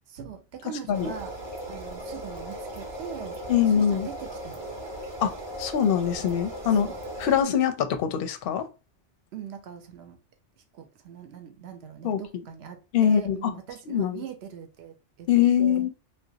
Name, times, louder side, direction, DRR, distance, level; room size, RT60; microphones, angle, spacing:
voice 1, 0.1-1.3 1.7-4.7 6.8-7.0 9.3-10.2 10.7-15.3 15.6-15.9, right 8 dB, 65° right, 0.9 m, -41 dB
sound 1, 0.9-7.4, right 1 dB, 30° right, 0.5 m, -37 dB
voice 2, 3.5-4.1 5.2-5.3 5.6-6.9 7.2-8.7 12.0-12.2 12.9-13.5 13.9-14.2 15.3-15.9, left 8 dB, 60° left, 0.6 m, -23 dB
3.3 x 2.5 x 2.8 m
omnidirectional pair, 1.2 m